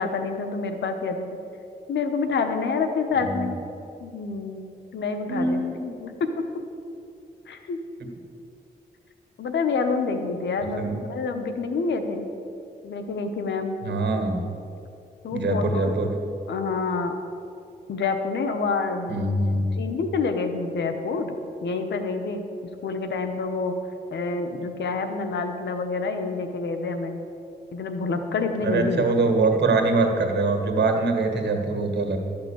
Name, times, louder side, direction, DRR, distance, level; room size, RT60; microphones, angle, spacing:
voice 1, 0.0-1.4 1.9-3.6 4.0-4.7 4.9-5.7 6.0-6.5 7.5-7.8 9.4-12.3 12.8-13.8 15.2-15.9 16.5-17.1 17.9-19.2 19.8-21.4 21.6-22.4 22.8-23.7 24.1-27.2 27.7-29.0, left 4 dB, 90° left, 6 dB, 1.1 m, -27 dB
voice 2, 5.3-5.9 10.8-11.0 13.8-14.4 15.3-16.2 19.1-19.8 28.6-32.2, right 3 dB, 75° right, 4 dB, 1.8 m, -23 dB
12.5 x 6.0 x 8.9 m, 2.6 s
cardioid pair, 60°, 18 cm